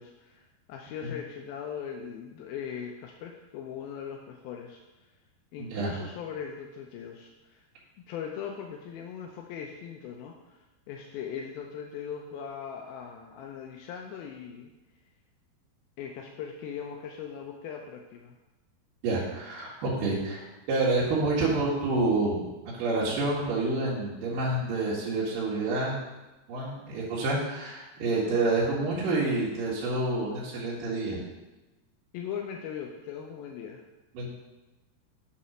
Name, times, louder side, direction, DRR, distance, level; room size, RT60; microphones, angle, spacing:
voice 1, 0.0-4.8 5.5-7.6 8.1-14.7 16.0-18.3 32.1-33.8, left 7 dB, 85° left, 1 dB, 2.2 m, -39 dB
voice 2, 5.6-5.9 19.0-22.5 22.7-26.0 26.5-31.2 34.1-34.3, right 2 dB, 60° right, -7 dB, 3.1 m, -28 dB
8.6 x 4.2 x 6.2 m, 1.1 s
omnidirectional pair, 4.9 m